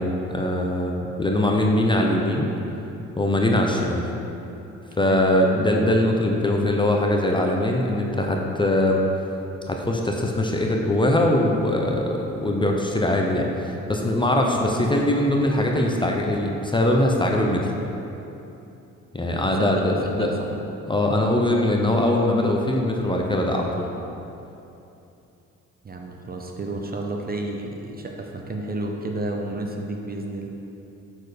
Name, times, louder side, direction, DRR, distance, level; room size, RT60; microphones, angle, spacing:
voice 1, 0.0-2.5 3.2-4.1 5.0-9.0 9.7-17.7 19.1-20.4 20.9-23.9, left 1 dB, 15° left, 0 dB, 0.7 m, -22 dB
voice 2, 19.6-20.5 25.8-30.5, right 2 dB, 30° right, 2 dB, 0.7 m, -31 dB
6.3 x 4.5 x 5.0 m, 2.8 s
cardioid pair, 90°, 30 cm